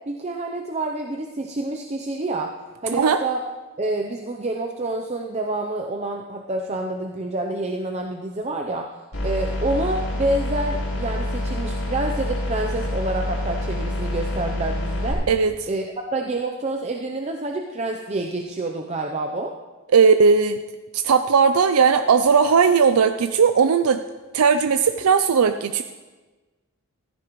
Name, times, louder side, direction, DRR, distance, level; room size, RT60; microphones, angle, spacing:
voice 1, 0.1-2.5 2.8-3.4 3.8-8.9 9.2-15.2 15.7-15.9 16.1-19.5, right 2 dB, 30° right, 2 dB, 0.6 m, -27 dB
sound 1, 9.1-15.1, left 1 dB, 80° left, 4.9 m, -27 dB
voice 2, 19.9-20.6 21.0-24.0 24.3-25.8, right 5 dB, 90° right, 9 dB, 0.5 m, -17 dB
15.0 x 14.5 x 3.1 m, 1.2 s
head